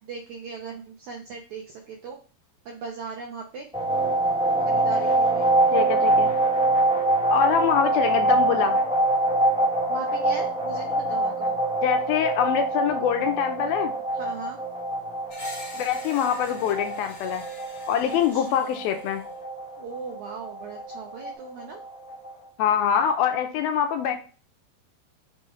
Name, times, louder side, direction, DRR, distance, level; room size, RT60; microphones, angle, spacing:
voice 1, 0.0-2.2 2.6-3.7 4.6-5.5 9.9-11.5 14.1-14.6 18.3-18.8 19.8-21.8, right 5 dB, 80° right, 0 dB, 1.7 m, -38 dB
sound 1, 3.7-22.3, right 2 dB, 5° right, 0.5 m, -25 dB
voice 2, 5.7-6.3 7.3-8.8 11.8-13.9 15.7-17.4 17.9-19.3 22.6-24.2, left 8 dB, 80° left, 6 dB, 2.3 m, -24 dB
Screech, 15.3-19.3, left 2 dB, 45° left, 2.2 m, -45 dB
6.3 x 3.9 x 3.8 m, 0.37 s
omnidirectional pair, 4.6 m